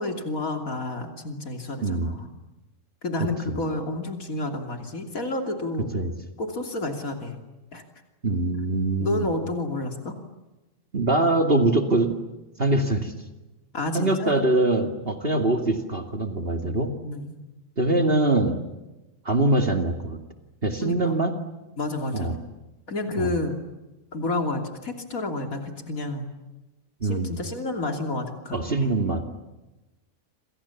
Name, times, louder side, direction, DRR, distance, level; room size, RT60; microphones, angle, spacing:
voice 1, 0.0-2.3 3.0-5.9 6.4-7.4 7.7-7.8 9.0-10.1 13.7-14.4 16.6-17.3 20.8-21.1 21.8-22.4 22.9-23.6 24.1-26.3 27.0-28.9, left 2 dB, 85° left, 4 dB, 3.4 m, -30 dB
voice 2, 1.8-2.1 3.2-3.6 5.9-6.1 8.2-9.3 10.9-12.2 12.6-13.1 13.9-16.9 17.8-18.6 19.2-20.2 20.6-21.3 22.1-22.4 23.2-23.3 27.0-27.4 28.5-29.2, right 2 dB, 45° right, 5 dB, 2.6 m, -23 dB
29.0 x 27.5 x 7.3 m, 1.0 s
omnidirectional pair, 1.4 m